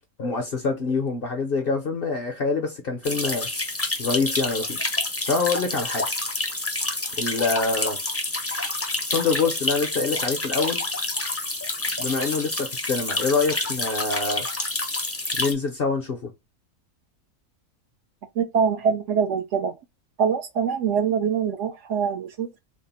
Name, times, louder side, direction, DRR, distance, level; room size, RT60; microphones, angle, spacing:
voice 1, 0.2-3.5 4.0-4.8 5.3-6.1 7.2-8.0 9.0-10.8 12.0-14.5 15.4-16.3, left 4 dB, 55° left, 0.7 m, -25 dB
sound 1, 3.0-15.5, left 2 dB, 20° left, 0.4 m, -28 dB
voice 2, 18.4-19.7 20.2-22.6, right 7 dB, 65° right, 0.8 m, -24 dB
3.6 x 2.4 x 4.0 m
omnidirectional pair, 1.5 m